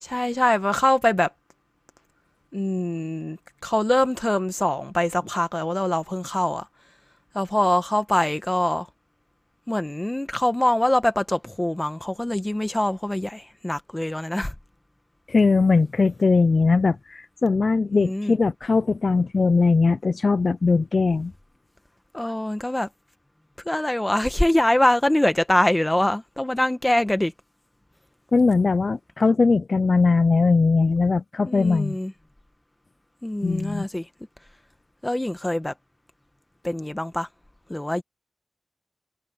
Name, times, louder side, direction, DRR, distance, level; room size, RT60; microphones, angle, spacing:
voice 1, 0.0-1.3 2.5-3.4 3.6-6.7 7.3-8.9 9.7-14.5 17.9-18.3 22.1-22.9 23.6-27.3 31.4-32.1 33.2-34.0 35.0-35.7 36.6-37.3 37.7-38.0, left 1 dB, 20° left, 1.5 m, -23 dB
voice 2, 15.3-21.3 28.3-32.0 33.4-33.9, left 4 dB, 65° left, 0.4 m, -20 dB
cardioid pair, 50°, 0 cm